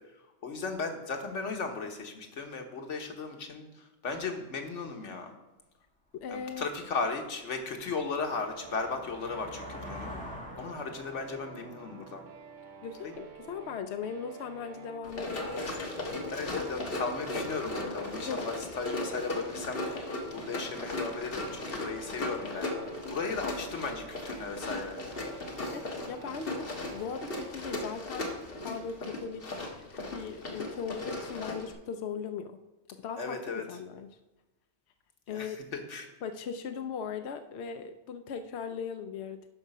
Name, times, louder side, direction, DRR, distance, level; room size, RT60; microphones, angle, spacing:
voice 1, 0.4-5.3 6.3-10.1 10.6-12.3 13.0-13.1 16.3-22.7 23.1-25.0 25.6-25.8 33.2-33.6 35.3-36.1, left 4 dB, 90° left, 4 dB, 1.5 m, -36 dB
voice 2, 6.1-6.6 12.8-15.9 18.3-18.5 25.7-32.6 32.9-34.1 35.3-35.6 36.2-39.5, left 6 dB, 70° left, 8 dB, 0.8 m, -39 dB
sound 1, 6.3-6.4 6.9-13.4, left 1 dB, 5° left, 1.9 m, -47 dB
sound 2, 8.3-27.5, right 6 dB, 50° right, 0.7 m, -50 dB
Run, 15.0-31.7, left 2 dB, 55° left, 1.5 m, -37 dB
12.0 x 4.9 x 5.4 m, 1.1 s
omnidirectional pair, 1.2 m